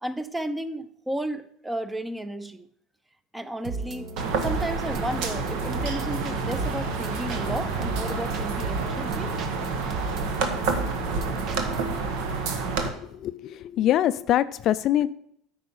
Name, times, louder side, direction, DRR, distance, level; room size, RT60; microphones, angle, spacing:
voice 1, 0.0-2.7 3.3-4.1 4.4-9.3, right 1 dB, 10° right, 13 dB, 0.6 m, -33 dB
sound 1, 3.6-12.0, right 3 dB, 45° right, 1.0 m, -36 dB
sound 2, 4.2-12.9, right 4 dB, 70° right, 1.2 m, -29 dB
voice 2, 12.8-15.1, left 12 dB, 55° left, 14 dB, 0.3 m, -24 dB
9.0 x 4.7 x 5.5 m, 0.68 s
supercardioid pair, 100°, 0 cm